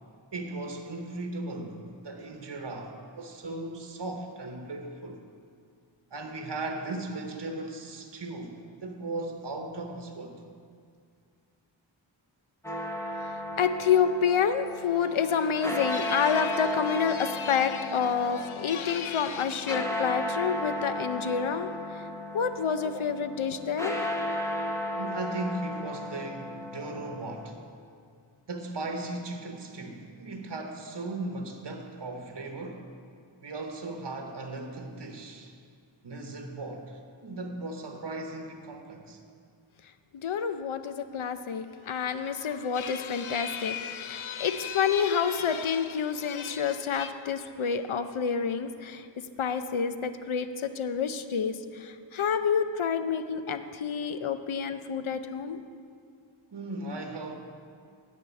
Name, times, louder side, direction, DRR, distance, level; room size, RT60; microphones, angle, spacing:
voice 1, 0.3-5.2 6.1-10.4 12.7-12.8 25.0-27.6 28.5-32.8 33.4-35.5 36.0-39.2 56.5-57.3, right 2 dB, 60° right, 3 dB, 1.0 m, -37 dB
sound 1, 12.6-27.5, left 1 dB, 5° left, 1.0 m, -35 dB
voice 2, 13.3-22.1 22.3-24.0 40.1-49.1 49.4-55.6, left 7 dB, 85° left, 10 dB, 0.6 m, -28 dB
10.0 x 5.1 x 8.0 m, 2.3 s
wide cardioid pair, 55°, 47 cm